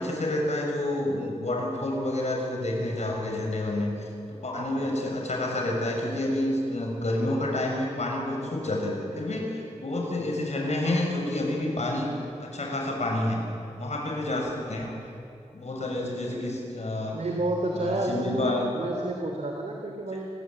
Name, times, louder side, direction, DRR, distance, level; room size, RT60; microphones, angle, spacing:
voice 1, 0.0-12.1 12.4-13.4 13.8-14.9 15.5-17.2 17.7-18.7, left 1 dB, 65° left, 1 dB, 6.9 m, -29 dB
voice 2, 17.1-20.3, right 2 dB, 70° right, 1 dB, 3.1 m, -30 dB
29.0 x 22.0 x 9.0 m, 2.6 s
wide cardioid pair, 100°, 12 cm